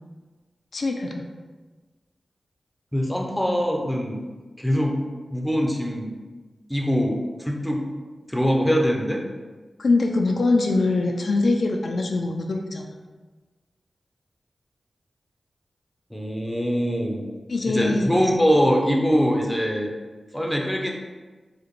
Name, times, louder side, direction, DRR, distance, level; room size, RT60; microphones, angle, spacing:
voice 1, 0.7-1.3 9.8-12.9 17.5-18.1, left 3 dB, 75° left, 2 dB, 0.3 m, -23 dB
voice 2, 2.9-4.3 4.6-5.0 5.3-6.2 6.7-7.8 8.3-9.2 16.1-17.3 17.6-19.9 20.3-20.9, equal, 5° left, 0 dB, 0.6 m, -23 dB
4.8 x 2.2 x 3.1 m, 1.3 s
cardioid pair, 55°, 0 cm